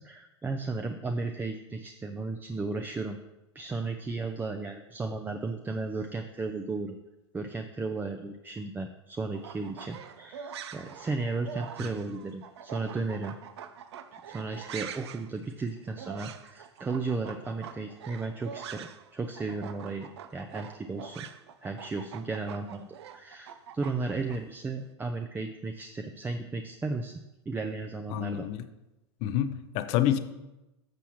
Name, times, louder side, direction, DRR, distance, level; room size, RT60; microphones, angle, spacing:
voice 1, 0.0-3.2 3.5-7.0 7.3-13.4 14.3-21.3 21.6-22.9 23.1-27.1 27.5-28.5, right 3 dB, 15° right, 6 dB, 0.6 m, -34 dB
sound 1, 9.3-19.1 19.3-24.4, right 8 dB, 65° right, 0.7 m, -44 dB
voice 2, 28.1-28.6 29.2-30.2, left 11 dB, 45° left, 10 dB, 0.7 m, -27 dB
13.0 x 6.9 x 3.1 m, 0.98 s
figure-of-eight pair, 90°, 15 cm